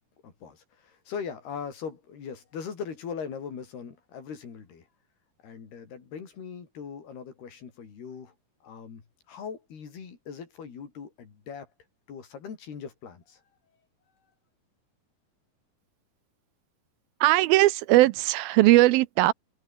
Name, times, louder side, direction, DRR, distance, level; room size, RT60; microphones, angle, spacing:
voice 1, 0.2-4.9 5.4-8.3 8.6-11.7 12.1-13.4, left 6 dB, 90° left, 6.4 m, -40 dB
voice 2, 17.2-19.3, right 17 dB, 80° right, 2.5 m, -19 dB
omnidirectional pair, 4.4 m